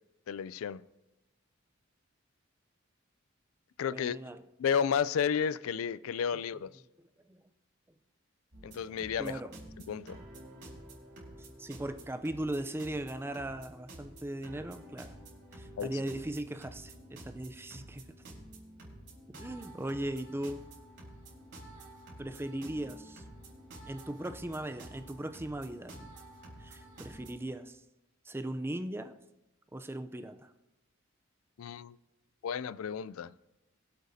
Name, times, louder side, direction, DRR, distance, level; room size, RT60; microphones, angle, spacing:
voice 1, 0.3-0.8 3.8-4.2 4.6-6.7 8.6-9.4 9.9-10.2 15.8-15.9 31.6-32.0 32.4-33.3, left 7 dB, 85° left, 0.4 m, -32 dB
voice 2, 3.9-4.4 7.0-7.4 9.2-9.6 11.4-15.1 15.5-18.0 19.3-20.7 22.2-23.2 23.9-26.1 26.6-27.8 28.2-29.2 29.7-30.5, right 1 dB, 10° right, 0.5 m, -38 dB
sound 1, 8.5-27.3, right 1 dB, 60° right, 4.1 m, -50 dB
23.0 x 8.1 x 2.7 m
head